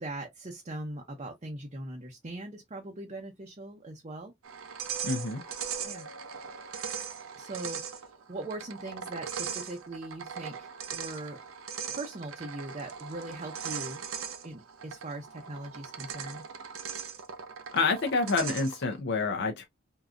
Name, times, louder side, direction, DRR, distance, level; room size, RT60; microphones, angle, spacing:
voice 1, 0.0-4.3 5.8-6.1 7.4-11.4 11.9-14.0 14.4-16.4, right 2 dB, 30° right, 0.6 m, -40 dB
sound 1, 4.4-18.9, right 7 dB, 85° right, 0.6 m, -39 dB
voice 2, 5.0-5.4 17.7-19.7, left 4 dB, 55° left, 0.6 m, -28 dB
3.6 x 2.7 x 2.3 m
head